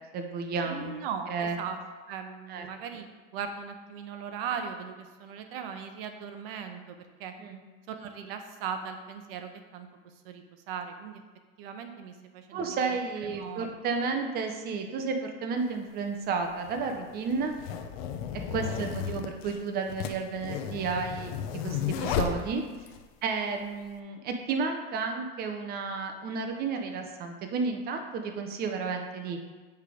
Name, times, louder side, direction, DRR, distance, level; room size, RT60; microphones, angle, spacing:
voice 1, 0.1-0.9 1.3-1.6 2.5-2.7 7.4-7.6 12.5-17.5 18.5-21.3 21.6-22.6 23.2-29.4, right 4 dB, 30° right, 5 dB, 0.7 m, -32 dB
voice 2, 0.7-1.8 2.1-7.3 7.9-11.2 11.6-12.7 13.2-14.1 18.8-19.1, right 7 dB, 70° right, 7 dB, 0.8 m, -39 dB
sound 1, 15.6-15.7 16.6-23.0, left 8 dB, 80° left, 0.8 m, -34 dB
8.1 x 3.4 x 4.9 m, 1.3 s
supercardioid pair, 135°, 29 cm